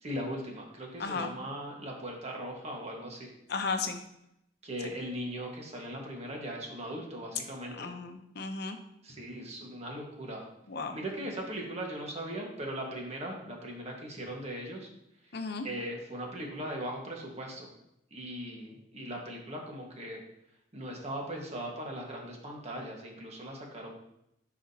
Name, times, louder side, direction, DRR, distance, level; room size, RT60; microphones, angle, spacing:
voice 1, 0.0-3.3 4.6-7.9 9.0-10.4 10.9-14.9 15.6-17.7 18.1-20.2 20.7-23.9, right 1 dB, 35° right, 0 dB, 1.5 m, -39 dB
voice 2, 1.0-1.3 3.5-4.0 7.7-8.8 10.7-11.0 15.3-15.7, left 4 dB, 60° left, 6 dB, 0.7 m, -34 dB
10.0 x 5.0 x 2.8 m, 0.79 s
head